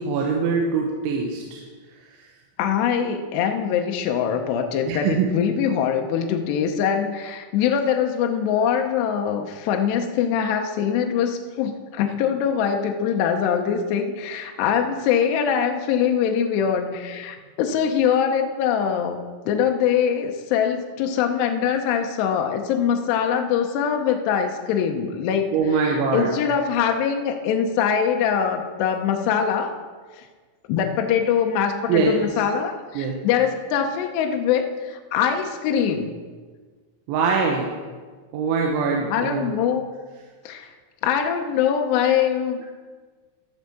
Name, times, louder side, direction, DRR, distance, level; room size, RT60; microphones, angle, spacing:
voice 1, 0.0-1.6 4.9-5.3 25.5-26.4 31.9-32.1 33.0-33.2 37.1-37.7 38.3-39.5, right 5 dB, 80° right, 0 dB, 3.5 m, -23 dB
voice 2, 2.6-19.2 19.5-25.5 25.8-29.7 30.2-30.3 30.7-36.2 39.1-39.8 40.5-40.7 41.0-42.6, left 8 dB, 75° left, 4 dB, 2.8 m, -23 dB
12.0 x 8.1 x 6.9 m, 1.5 s
omnidirectional pair, 5.3 m